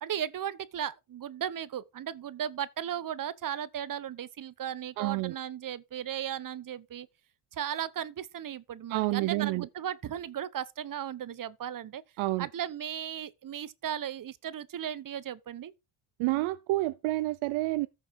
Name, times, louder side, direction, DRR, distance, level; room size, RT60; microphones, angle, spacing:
voice 1, 0.0-7.1 7.5-12.0 12.4-15.7, right 10 dB, 45° right, 1.0 m, -36 dB
voice 2, 5.0-5.3 8.9-9.7 12.2-12.5 16.2-17.9, right 19 dB, 85° right, 0.7 m, -29 dB
14.0 x 6.3 x 4.7 m
cardioid pair, 90°, 47 cm